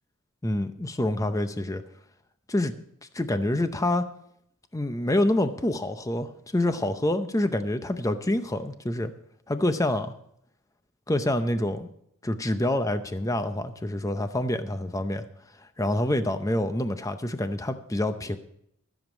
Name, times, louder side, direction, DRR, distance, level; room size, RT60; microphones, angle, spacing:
voice 1, 0.4-1.8 2.5-2.7 3.1-4.1 4.7-9.1 9.5-10.1 11.1-11.9 12.2-15.2 15.8-18.4, left 1 dB, 15° left, 9 dB, 0.6 m, -27 dB
14.0 x 7.3 x 6.1 m, 0.73 s
head